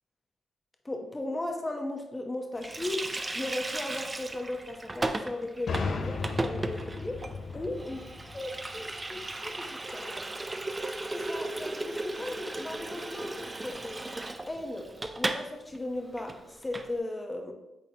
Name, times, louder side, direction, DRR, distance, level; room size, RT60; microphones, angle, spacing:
voice 1, 0.8-3.0 3.3-7.3 7.5-8.1 8.3-10.2 11.1-14.1 14.5-17.5, left 1 dB, 20° left, 4 dB, 1.0 m, -37 dB
Water tap faucet, 2.6-15.5 15.7-15.9 16.2-16.9, right 2 dB, 25° right, 0.5 m, -36 dB
sound 1, 5.7-9.3, left 4 dB, 60° left, 0.5 m, -36 dB
8.5 x 4.0 x 2.9 m, 0.98 s
supercardioid pair, 60°, 0 cm